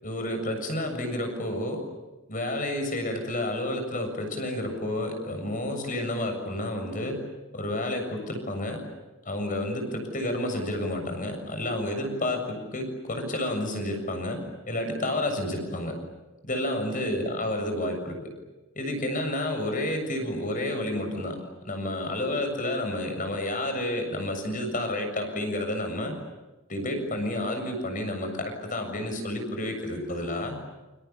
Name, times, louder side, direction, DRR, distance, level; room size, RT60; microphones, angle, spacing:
voice 1, 0.0-1.8 2.3-7.2 7.5-8.8 9.3-14.4 14.7-16.0 16.4-18.2 18.8-21.4 21.6-26.1 26.7-30.6, left 1 dB, 40° left, 5 dB, 7.3 m, -30 dB
29.5 x 27.5 x 7.2 m, 1.1 s
head